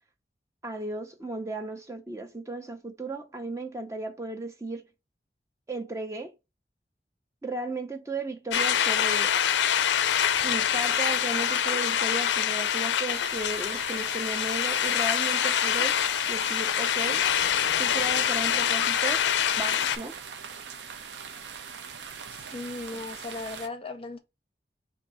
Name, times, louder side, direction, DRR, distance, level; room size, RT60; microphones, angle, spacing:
voice 1, 0.6-4.9 5.7-6.3 7.4-9.3 10.4-16.0 16.3-17.3 17.8-19.3 19.6-20.2, right 2 dB, 15° right, 0.5 m, -35 dB
sound 1, 8.5-20.0, left 9 dB, 80° left, 0.4 m, -25 dB
sound 2, 13.1-23.7, right 6 dB, 80° right, 0.6 m, -42 dB
voice 2, 22.3-24.2, left 3 dB, 30° left, 0.6 m, -37 dB
3.4 x 2.6 x 4.0 m
head